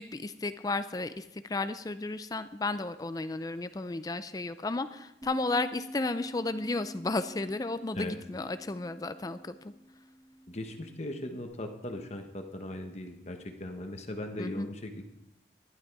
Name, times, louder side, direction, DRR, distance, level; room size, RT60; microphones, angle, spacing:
voice 1, 0.0-9.6 14.4-14.7, left 3 dB, 20° left, 12 dB, 0.4 m, -33 dB
Bass guitar, 5.2-11.5, right 1 dB, 15° right, 2.5 m, -47 dB
voice 2, 10.5-15.0, left 1 dB, 40° left, 5 dB, 1.1 m, -38 dB
12.0 x 11.5 x 4.7 m, 0.87 s
head